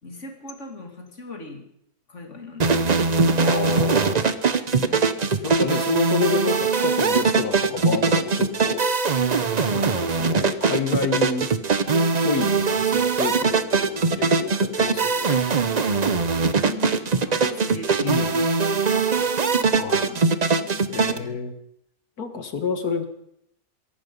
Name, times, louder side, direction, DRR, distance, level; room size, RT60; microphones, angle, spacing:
voice 1, 0.0-1.7 2.1-3.5 4.5-5.5 16.6-21.4, left 2 dB, 50° left, 4 dB, 2.7 m, -41 dB
sound 1, 2.6-21.2, right 4 dB, 35° right, 0.7 m, -21 dB
voice 2, 3.4-4.3 5.4-8.8 9.7-11.5 12.2-15.4 18.0-18.5 19.8-20.1 20.9-21.5 22.2-23.1, left 5 dB, 75° left, 7 dB, 2.1 m, -29 dB
22.0 x 11.5 x 5.4 m, 0.75 s
omnidirectional pair, 1.6 m